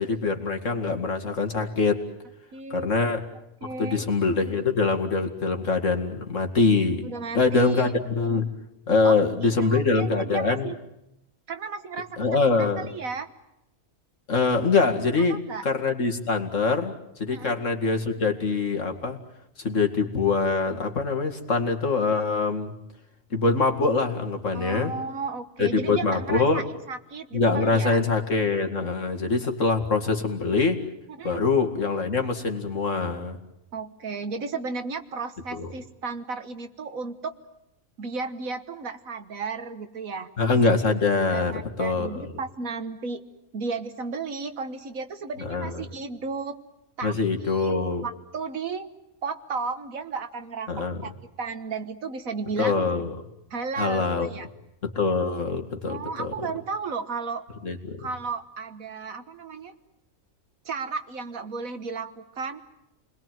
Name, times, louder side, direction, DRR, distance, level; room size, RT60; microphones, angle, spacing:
voice 1, 0.0-2.0 2.7-3.2 3.8-7.0 7.3-8.5 8.9-10.7 12.2-12.9 14.3-19.2 19.6-22.7 23.3-24.9 25.6-26.7 27.3-30.8 31.2-33.4 35.5-35.7 40.4-41.5 41.8-42.2 45.5-45.8 47.0-48.1 50.7-51.0 52.6-53.2 53.8-54.3 54.8-56.3 57.6-58.1, left 4 dB, 60° left, 4 dB, 2.6 m, -24 dB
voice 2, 2.5-2.9 3.6-4.1 7.0-7.9 9.0-9.2 9.4-10.8 11.5-12.2 12.6-13.3 15.3-15.7 17.3-17.6 24.5-28.0 31.2-31.4 33.7-37.3 38.0-40.3 41.3-43.2 43.5-46.6 47.0-48.9 49.2-51.1 51.4-52.8 53.5-54.5 55.9-57.5 58.0-59.7 60.7-62.6, right 4 dB, 70° right, 9 dB, 1.8 m, -34 dB
29.5 x 21.0 x 9.3 m, 0.83 s
omnidirectional pair, 1.5 m